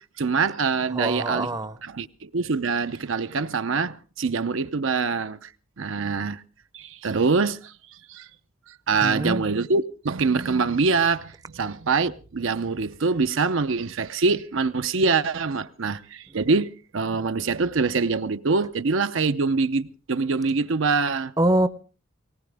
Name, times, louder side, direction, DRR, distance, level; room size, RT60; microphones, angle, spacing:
voice 1, 0.0-1.5 1.9-5.5 5.8-6.4 6.7-8.3 8.7-21.3, right 4 dB, 65° right, 0.7 m, -24 dB
voice 2, 0.9-1.8 9.0-9.4 21.4-21.7, right 1 dB, 20° right, 0.7 m, -24 dB
19.0 x 18.5 x 3.5 m
head